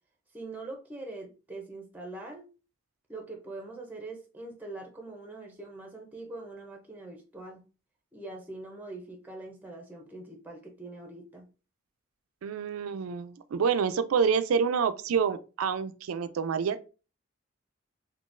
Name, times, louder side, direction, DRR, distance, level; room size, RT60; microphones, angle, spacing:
voice 1, 0.3-2.5 3.1-7.7 8.1-11.5, right 2 dB, 10° right, 0.5 m, -43 dB
voice 2, 12.4-16.9, right 6 dB, 85° right, 0.4 m, -28 dB
3.7 x 2.7 x 2.5 m
head